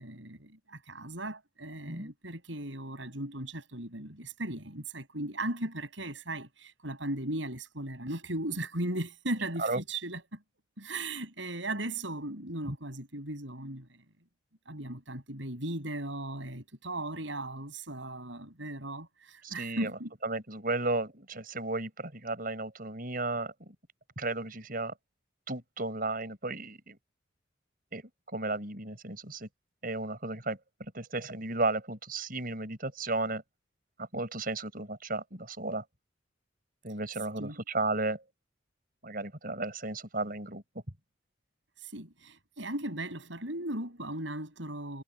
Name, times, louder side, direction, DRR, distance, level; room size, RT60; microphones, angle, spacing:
voice 1, 0.0-10.2 10.8-14.0 14.7-20.1 37.4-37.6 41.8-45.0, right 1 dB, 75° right, 7.8 m, -37 dB
voice 2, 19.4-19.9 20.2-23.5 24.2-24.9 25.5-27.0 27.9-28.0 28.3-29.5 29.8-30.6 30.9-33.4 34.1-35.8 36.8-38.2 39.0-40.6, right 2 dB, 45° right, 6.8 m, -34 dB
head